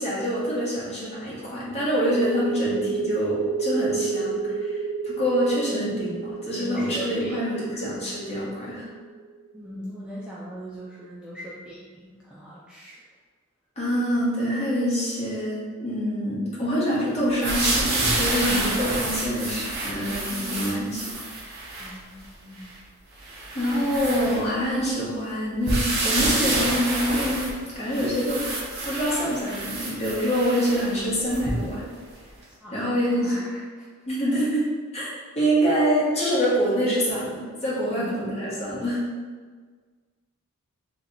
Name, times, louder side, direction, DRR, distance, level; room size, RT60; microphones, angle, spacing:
voice 1, 0.0-8.9 13.8-21.3 23.5-27.5 27.7-28.4 28.8-31.8 32.7-33.3 34.1-34.6 34.9-39.0, equal, 30° left, -8 dB, 1.2 m, -25 dB
sound 1, 1.9-9.4, right 5 dB, 70° right, 0.4 m, -30 dB
voice 2, 6.5-7.4 9.5-13.0 21.8-22.8 32.6-33.9 37.8-38.2, right 1 dB, 5° right, -8 dB, 0.3 m, -40 dB
sound 2, 17.4-22.0 22.6-22.7 23.2-24.8 25.7-31.8 32.4-32.5, right 2 dB, 50° right, 0.9 m, -28 dB
3.1 x 2.8 x 3.9 m, 1.5 s
head